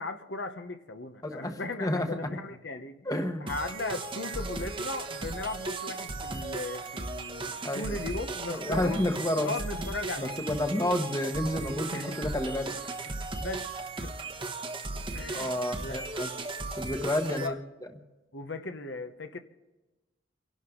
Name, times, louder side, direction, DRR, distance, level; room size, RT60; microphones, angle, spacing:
voice 1, 0.0-3.1 3.4-9.0 9.4-10.4 11.9-12.2 13.4-13.7 14.0-14.1 15.1-15.5 15.8-16.1 17.4-17.6 18.3-19.4, left 2 dB, 70° left, 1.1 m, -37 dB
voice 2, 1.2-2.1 3.0-3.5 7.6-8.0 8.5-9.5 9.8-9.9 10.2-12.7 15.3-16.3 16.8-17.6, left 1 dB, 20° left, 1.2 m, -30 dB
sound 1, 3.5-17.5, right 3 dB, 25° right, 1.0 m, -36 dB
29.5 x 12.0 x 3.9 m
head